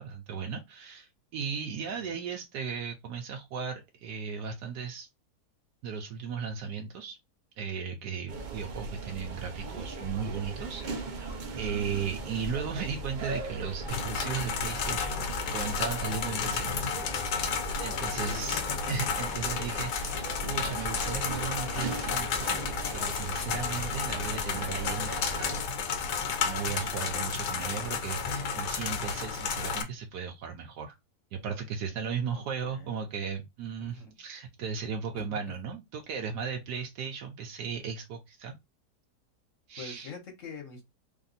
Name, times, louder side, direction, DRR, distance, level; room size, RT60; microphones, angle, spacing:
voice 1, 0.0-5.1 5.8-7.2 7.6-11.3 11.6-15.2 15.5-16.7 17.0-17.3 17.8-22.5 22.9-25.6 26.4-31.0 31.3-38.6 39.7-40.1, right 6 dB, 75° right, 1.2 m, -36 dB
voice 2, 1.9-2.2 18.1-18.9 27.5-27.6 32.3-33.0 33.8-34.1 35.1-35.4 39.8-40.8, left 5 dB, 50° left, 1.6 m, -45 dB
sound 1, 8.3-25.6, right 2 dB, 60° right, 0.5 m, -38 dB
sound 2, 13.9-29.8, left 6 dB, 90° left, 1.4 m, -32 dB
3.4 x 2.6 x 3.9 m
omnidirectional pair, 1.8 m